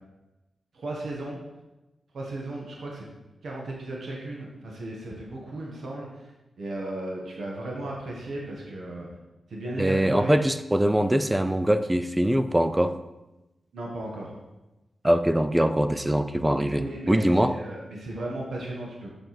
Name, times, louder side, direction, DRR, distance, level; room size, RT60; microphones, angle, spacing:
voice 1, 0.7-1.4 2.1-3.0 3.4-6.3 6.6-9.1 9.5-10.4 13.7-14.3 16.8-19.1, right 1 dB, 75° right, -2 dB, 1.6 m, -35 dB
voice 2, 9.8-13.0 15.0-17.6, right 1 dB, 10° right, 11 dB, 0.5 m, -23 dB
7.5 x 5.2 x 6.1 m, 1.0 s
wide cardioid pair, 120°, 0 cm